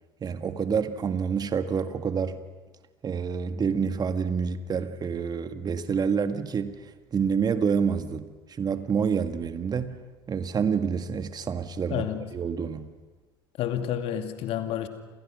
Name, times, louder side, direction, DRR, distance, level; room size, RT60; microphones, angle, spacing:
voice 1, 0.2-2.4 3.0-8.3 8.6-10.0 10.3-12.1 12.3-12.9, right 6 dB, 35° right, 9 dB, 1.8 m, -28 dB
voice 2, 11.9-12.2 13.6-14.9, left 10 dB, 55° left, 7 dB, 2.5 m, -29 dB
29.5 x 28.0 x 6.3 m, 1.3 s
figure-of-eight pair, 60°, 12 cm